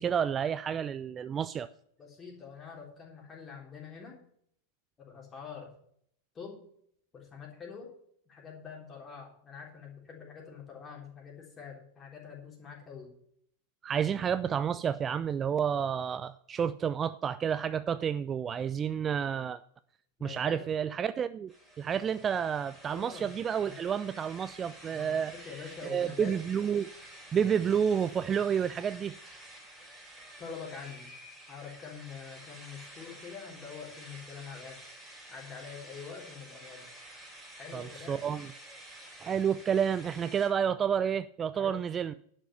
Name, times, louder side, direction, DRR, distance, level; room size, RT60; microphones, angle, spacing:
voice 1, 0.0-1.7 13.8-19.6 20.2-21.5 21.8-25.3 25.8-26.9 27.3-29.2 37.7-38.5 39.2-42.1, right 8 dB, 25° right, 14 dB, 0.4 m, -30 dB
voice 2, 2.0-4.2 5.0-5.7 6.3-6.6 7.1-8.0 8.2-13.1 20.2-20.6 22.9-23.3 23.7-23.8 24.9-26.4 30.4-31.1 31.5-34.8 35.3-36.9 37.6-38.2 41.5-41.7, left 6 dB, 20° left, 0 dB, 3.4 m, -45 dB
sound 1, 21.5-40.5, right 1 dB, 5° right, 4.4 m, -50 dB
11.0 x 6.0 x 6.9 m, 0.66 s
figure-of-eight pair, 90°, 0 cm